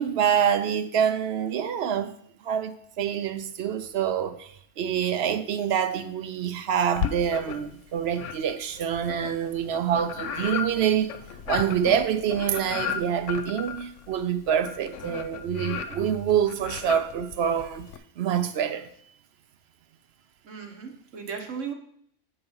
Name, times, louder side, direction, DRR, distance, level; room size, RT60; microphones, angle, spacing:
voice 1, 0.0-2.1 2.4-11.1 11.5-17.9 18.2-18.9, right 8 dB, 65° right, 0.8 m, -26 dB
sound 1, 7.0-7.8 8.1-18.0, left 7 dB, 80° left, 1.0 m, -35 dB
voice 2, 20.4-21.7, right 6 dB, 80° right, 1.5 m, -36 dB
7.8 x 3.9 x 5.4 m
omnidirectional pair, 1.3 m